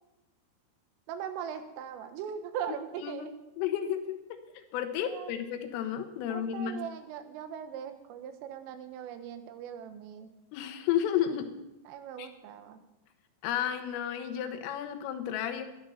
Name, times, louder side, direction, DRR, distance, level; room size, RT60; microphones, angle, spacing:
voice 1, 1.1-3.3 5.0-5.3 6.3-10.3 11.9-12.8, right 8 dB, 85° right, 9 dB, 3.7 m, -40 dB
voice 2, 3.0-3.3 3.6-6.8 10.5-11.5 12.2-12.3 13.4-15.6, left 10 dB, 85° left, 7 dB, 3.8 m, -32 dB
13.0 x 10.5 x 6.8 m, 0.92 s
omnidirectional pair, 5.8 m